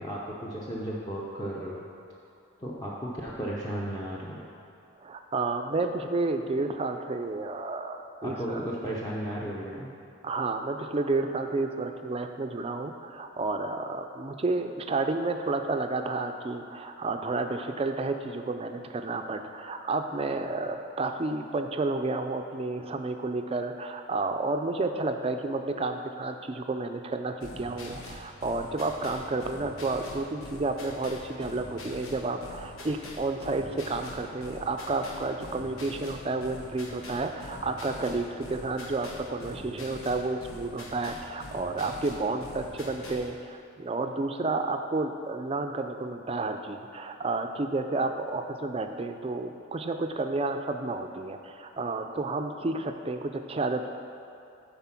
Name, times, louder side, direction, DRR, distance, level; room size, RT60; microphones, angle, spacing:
voice 1, 0.0-1.8 2.6-4.4 8.2-9.9, equal, 20° left, -6 dB, 0.6 m, -34 dB
voice 2, 5.0-8.7 10.2-53.9, right 3 dB, 25° right, 6 dB, 0.4 m, -31 dB
sound 1, 27.4-43.3, left 2 dB, 75° left, 1.0 m, -44 dB
9.6 x 4.1 x 5.8 m, 2.6 s
head